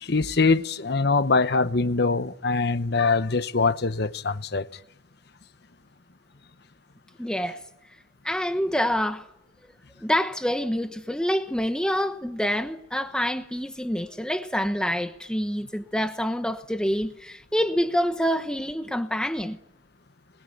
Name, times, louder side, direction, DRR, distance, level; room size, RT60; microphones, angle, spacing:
voice 1, 0.0-4.7, left 4 dB, 65° left, 1.0 m, -23 dB
voice 2, 7.2-7.6 8.2-9.3 10.0-19.6, equal, 5° left, 1.0 m, -26 dB
27.5 x 21.5 x 9.3 m
head